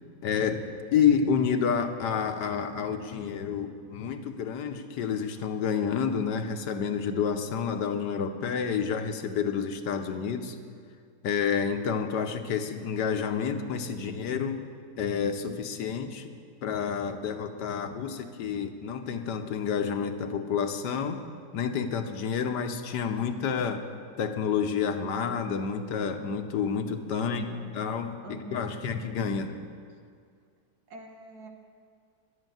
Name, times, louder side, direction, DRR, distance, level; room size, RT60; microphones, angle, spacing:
voice 1, 0.2-10.6 11.2-14.6 15.0-16.4 16.6-21.2 21.5-23.8 24.2-27.4 27.7-29.5, left 7 dB, 85° left, 7 dB, 1.5 m, -29 dB
voice 2, 27.3-27.7 28.2-28.7 30.9-31.5, right 2 dB, 70° right, 2 dB, 1.9 m, -43 dB
12.0 x 8.1 x 9.1 m, 2.2 s
omnidirectional pair, 1.8 m